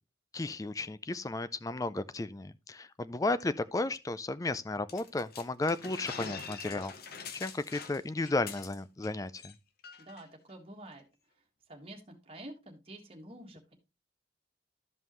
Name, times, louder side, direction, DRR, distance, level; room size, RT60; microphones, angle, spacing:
voice 1, 0.3-6.9 7.3-9.5, left 2 dB, 20° left, 0.4 m, -34 dB
sound 1, 4.9-9.1 9.4-9.5 9.8-10.2, left 5 dB, 55° left, 0.9 m, -44 dB
voice 2, 10.0-11.1 11.7-13.7, right 1 dB, 30° right, 1.6 m, -48 dB
12.5 x 5.4 x 3.0 m
head